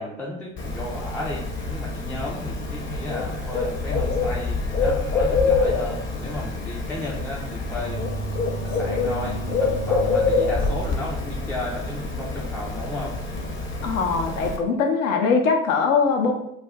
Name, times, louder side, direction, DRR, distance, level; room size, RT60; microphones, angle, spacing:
voice 1, 0.0-8.1 8.6-13.2, left 1 dB, 5° left, -3 dB, 0.3 m, -34 dB
Bird, 0.6-14.6, left 3 dB, 30° left, 0.7 m, -26 dB
voice 2, 13.8-16.3, left 5 dB, 75° left, 3 dB, 0.7 m, -21 dB
2.5 x 2.2 x 3.3 m, 0.78 s
hypercardioid pair, 75°, 40 cm